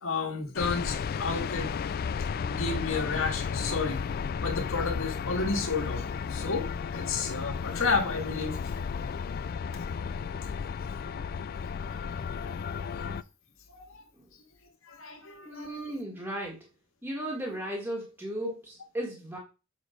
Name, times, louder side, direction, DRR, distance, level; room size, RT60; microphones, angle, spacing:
voice 1, 0.0-1.9 2.5-4.0 4.4-6.7 6.9-8.5 11.9-13.2 13.7-14.0 14.9-15.7, left 4 dB, 70° left, 3 dB, 1.8 m, -32 dB
sound 1, 0.6-13.2, left 6 dB, 45° left, 0.3 m, -33 dB
voice 2, 15.4-16.7 17.0-19.4, right 1 dB, 10° right, -2 dB, 1.6 m, -35 dB
7.4 x 4.3 x 5.0 m, 0.30 s
head